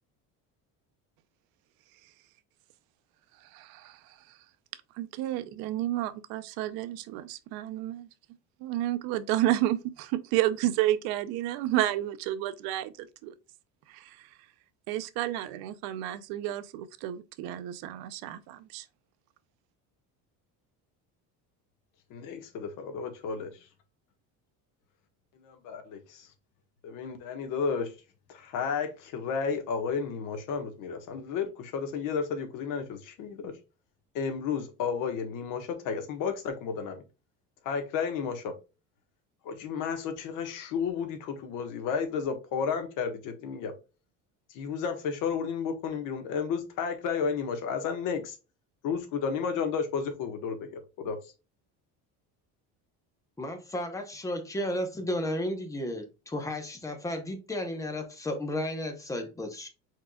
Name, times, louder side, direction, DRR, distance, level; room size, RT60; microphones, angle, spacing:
voice 1, 3.4-4.2 4.9-8.1 8.6-13.3 13.9-14.3 14.9-18.9, right 14 dB, 80° right, 0.7 m, -31 dB
voice 2, 22.1-23.7 25.4-26.3 26.8-28.0 28.3-33.6 34.1-37.0 37.6-38.5 39.4-43.7 44.5-48.4 48.8-51.3, left 6 dB, 60° left, 1.4 m, -32 dB
voice 3, 53.4-59.7, left 1 dB, 10° left, 0.9 m, -33 dB
4.6 x 4.6 x 2.3 m
cardioid pair, 175°, 35 cm